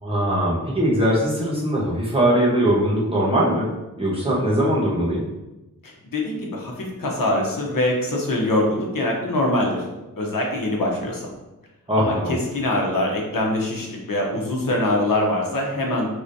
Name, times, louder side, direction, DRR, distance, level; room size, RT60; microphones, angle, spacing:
voice 1, 0.0-3.7 4.0-5.2 11.9-12.3, right 1 dB, 15° right, -5 dB, 1.1 m, -21 dB
voice 2, 5.8-9.8 10.2-11.2 12.0-16.1, left 1 dB, 80° left, -1 dB, 1.0 m, -23 dB
4.9 x 3.6 x 2.7 m, 1.0 s
wide cardioid pair, 120°, 33 cm